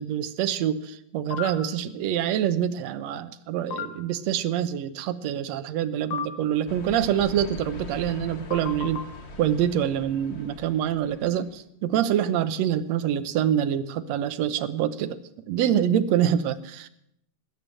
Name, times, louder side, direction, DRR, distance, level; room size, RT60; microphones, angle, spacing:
voice 1, 0.0-9.1 9.4-15.2 15.5-16.9, right 10 dB, 70° right, 11 dB, 1.9 m, -26 dB
sound 1, 1.3-1.5 3.7-3.9 6.1-6.3 8.5-9.0, left 7 dB, 75° left, 2.7 m, -31 dB
sound 2, 6.7-11.6, left 3 dB, 55° left, 0.7 m, -42 dB
19.5 x 9.5 x 7.7 m, 0.75 s
omnidirectional pair, 3.6 m